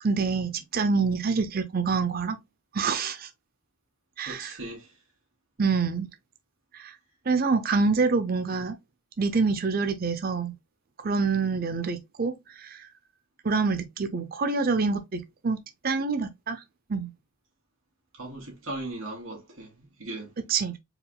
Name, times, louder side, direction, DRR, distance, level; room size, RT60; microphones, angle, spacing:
voice 1, 0.0-2.4 2.7-3.3 4.2-4.6 5.6-6.1 6.8-6.9 7.3-8.8 9.2-10.5 11.0-12.9 13.4-15.6 15.8-16.6 16.9-17.1 20.5-20.8, right 4 dB, 40° right, 0.5 m, -26 dB
voice 2, 4.3-4.9 18.2-20.3, right 2 dB, 65° right, 2.2 m, -38 dB
4.7 x 3.5 x 2.3 m
head